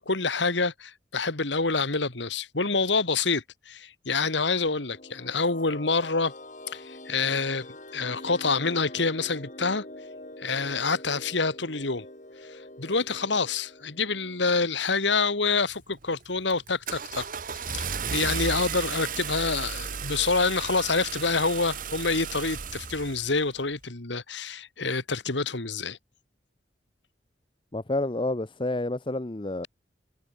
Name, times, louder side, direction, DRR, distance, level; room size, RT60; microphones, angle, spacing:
voice 1, 0.1-6.3 6.7-7.7 7.9-9.8 10.4-12.1 12.5-17.3 17.5-26.0, left 4 dB, 70° left, 2.2 m, -27 dB
sound 1, 4.6-15.4, left 1 dB, 40° left, 7.8 m, -45 dB
Car / Engine starting, 15.7-16.0 16.5-23.5, right 6 dB, 45° right, 1.5 m, -34 dB
voice 2, 27.7-29.7, left 2 dB, 25° left, 0.8 m, -29 dB
head